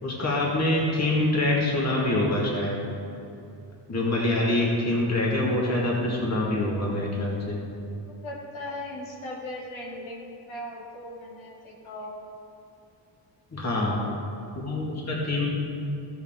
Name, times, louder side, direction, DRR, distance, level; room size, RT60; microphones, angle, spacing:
voice 1, 0.0-2.8 3.9-7.6 13.5-14.0 14.5-15.5, left 1 dB, 35° left, -3 dB, 1.8 m, -25 dB
voice 2, 8.2-12.2 13.7-14.1, left 1 dB, 75° left, -3 dB, 2.3 m, -38 dB
14.5 x 8.1 x 3.6 m, 2.7 s
wide cardioid pair, 150°, 47 cm